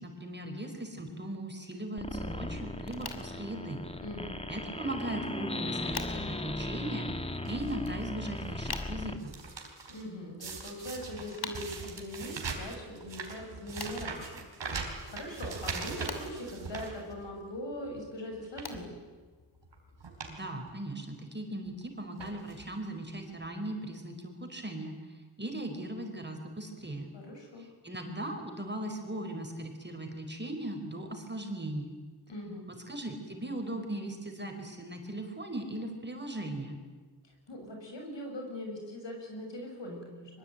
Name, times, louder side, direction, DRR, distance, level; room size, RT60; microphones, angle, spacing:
voice 1, 0.0-3.8 4.5-9.3 20.2-25.0 25.4-27.1 27.8-31.9 32.7-36.8, right 1 dB, 25° right, 4 dB, 4.8 m, -38 dB
sound 1, 2.0-9.2, left 2 dB, 15° left, 1.7 m, -37 dB
sound 2, 2.8-20.1, left 4 dB, 60° left, 2.9 m, -48 dB
voice 2, 4.0-4.4 9.9-14.3 14.7-19.0 27.1-27.7 32.3-32.7 37.2-40.4, left 1 dB, 80° left, 2 dB, 7.1 m, -41 dB
sound 3, 7.4-7.9 8.4-8.8 9.0-10.0 10.4-17.5 17.9-18.0 18.4-18.8 19.6-19.7 20.0-20.4 20.7-20.8 21.7-21.8 22.2-22.7 23.4-23.5 23.7-23.8, right 4 dB, 90° right, 3.9 m, -41 dB
23.5 x 21.5 x 9.1 m, 1.4 s
wide cardioid pair, 70°, 43 cm